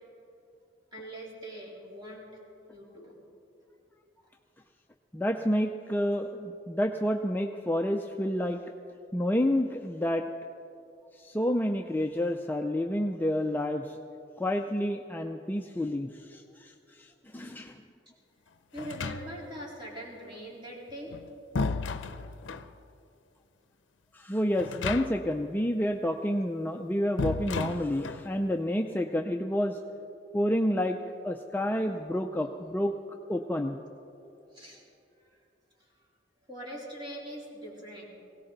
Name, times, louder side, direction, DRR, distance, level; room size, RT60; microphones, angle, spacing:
voice 1, 0.9-2.3 2.7-3.2 18.7-21.2 34.5-34.8 35.2-35.3 36.5-38.0, equal, 25° right, -5 dB, 3.7 m, -42 dB
voice 2, 5.1-8.6 9.1-10.3 11.1-14.0 14.4-17.8 24.1-29.8 30.3-31.0 31.2-32.9 33.3-33.8, equal, 10° left, 4 dB, 0.4 m, -29 dB
sound 1, 18.8-19.6 20.9-22.7 24.6-25.4 25.7-25.8 27.2-28.3, left 4 dB, 80° left, 0.6 m, -34 dB
19.5 x 17.5 x 4.0 m, 2.8 s
head